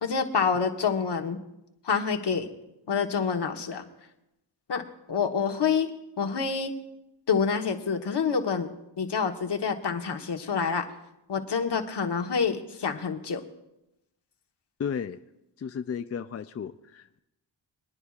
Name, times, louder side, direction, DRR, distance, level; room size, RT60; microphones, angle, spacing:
voice 1, 0.0-1.4 1.8-2.5 2.9-3.8 4.7-6.7 7.3-8.7 9.0-10.9 11.3-13.4, left 6 dB, 60° left, 4 dB, 1.3 m, -27 dB
voice 2, 14.8-15.2 15.6-17.2, left 7 dB, 35° left, 9 dB, 0.4 m, -34 dB
26.0 x 9.9 x 2.4 m, 0.89 s
cardioid pair, 85°, 46 cm